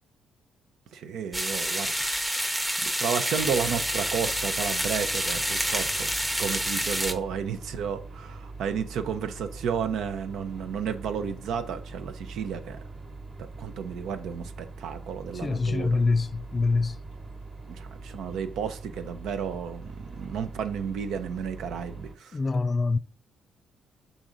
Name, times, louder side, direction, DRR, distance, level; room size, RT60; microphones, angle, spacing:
voice 1, 0.9-1.9 2.3-2.4 2.8-6.1 6.4-12.8 13.4-16.0 17.6-22.4, right 7 dB, 80° right, 0.6 m, -32 dB
sound 1, 1.3-7.1, equal, 5° right, 0.7 m, -28 dB
sound 2, 3.4-22.2, right 3 dB, 40° right, 1.1 m, -43 dB
voice 2, 15.3-17.0 22.3-23.0, left 3 dB, 35° left, 0.3 m, -25 dB
6.1 x 4.0 x 3.9 m
cardioid pair, 90°, 0 cm